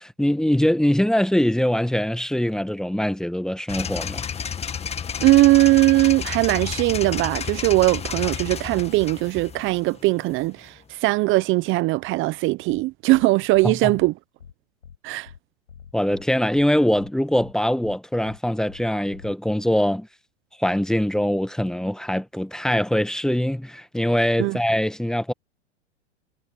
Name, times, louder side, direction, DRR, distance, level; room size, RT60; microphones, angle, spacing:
voice 1, 0.0-4.2 13.6-13.9 15.9-20.1 20.6-25.3, equal, ahead, 1.5 m, -23 dB
sound 1, 3.7-10.7, left 7 dB, 20° left, 2.0 m, -31 dB
voice 2, 5.2-14.1 15.0-15.3 24.4-24.6, right 20 dB, 35° right, 0.9 m, -20 dB
sound 2, 12.7-12.8 13.1-13.2 13.5-13.7 14.0-14.1 14.4-14.5 14.8-15.0 15.3-15.4 15.7-16.2 16.5-16.7 17.0-17.1 17.4-17.5 17.8-18.0 18.3-18.4 18.7-18.8 19.1-19.3, left 7 dB, 85° left, 7.2 m, -45 dB
hypercardioid pair, 105°, 33 cm